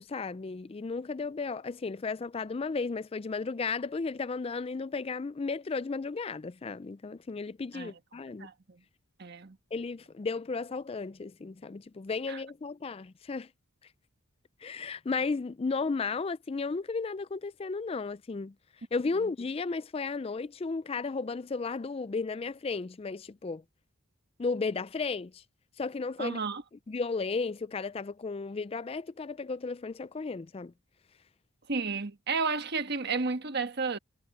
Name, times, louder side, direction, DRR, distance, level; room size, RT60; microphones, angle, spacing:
voice 1, 0.0-8.5 9.7-13.5 14.6-18.5 18.9-23.6 24.4-25.4 25.8-26.4 26.9-30.7, left 4 dB, 25° left, 0.3 m, -34 dB
voice 2, 9.2-9.6 12.3-12.4 26.2-26.6 31.7-34.0, right 4 dB, 50° right, 1.3 m, -32 dB
head